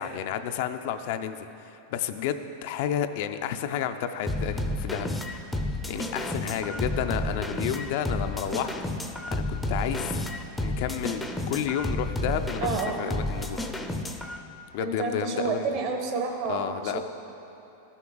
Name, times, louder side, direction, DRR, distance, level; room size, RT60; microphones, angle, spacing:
voice 1, 0.0-5.5 5.9-8.7 9.3-10.2 10.6-12.7 13.0-13.7 14.7-15.7 16.5-17.0, left 9 dB, 60° left, 8 dB, 0.4 m, -31 dB
sound 1, 4.3-14.4, left 1 dB, 5° left, 0.5 m, -31 dB
voice 2, 12.6-13.2 14.8-17.0, right 4 dB, 50° right, 3 dB, 1.2 m, -30 dB
13.0 x 6.0 x 3.9 m, 2.9 s
supercardioid pair, 135°, 0 cm